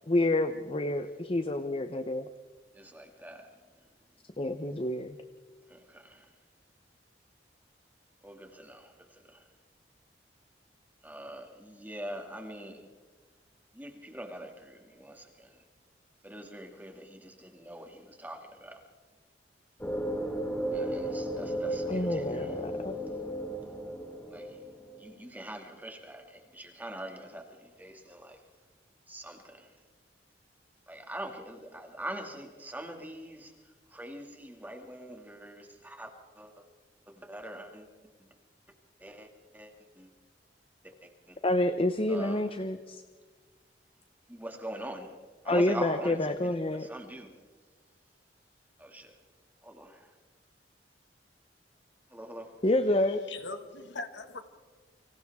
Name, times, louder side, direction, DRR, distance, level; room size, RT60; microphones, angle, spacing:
voice 1, 0.1-2.3 4.4-5.2 21.9-22.9 41.4-43.0 45.5-46.9 52.6-53.2, left 1 dB, 30° left, 0.7 m, -28 dB
voice 2, 2.7-3.6 5.7-6.3 8.2-9.5 11.0-12.8 13.7-15.6 16.2-18.8 20.7-22.6 24.3-24.6 25.0-28.4 29.1-29.8 30.9-36.1 36.3-36.7 37.1-37.9 39.0-40.1 40.8-41.4 42.1-42.4 44.3-45.1 45.4-47.3 48.8-49.1 49.6-50.1 52.1-52.5, right 1 dB, 10° right, 2.3 m, -43 dB
sound 1, 19.8-25.1, right 1 dB, 10° left, 2.5 m, -34 dB
voice 3, 53.0-54.5, left 3 dB, 75° left, 1.8 m, -41 dB
29.5 x 25.0 x 3.6 m
head